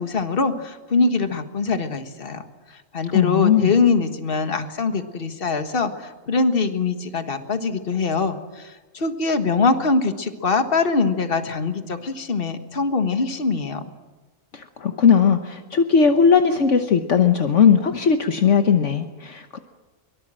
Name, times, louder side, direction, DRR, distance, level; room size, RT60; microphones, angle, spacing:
voice 1, 0.0-2.5 2.9-13.8, left 4 dB, 45° left, 7 dB, 1.7 m, -23 dB
voice 2, 3.1-3.7 14.5-19.6, left 6 dB, 65° left, 6 dB, 1.4 m, -18 dB
23.5 x 23.0 x 7.7 m, 1.2 s
omnidirectional pair, 1.4 m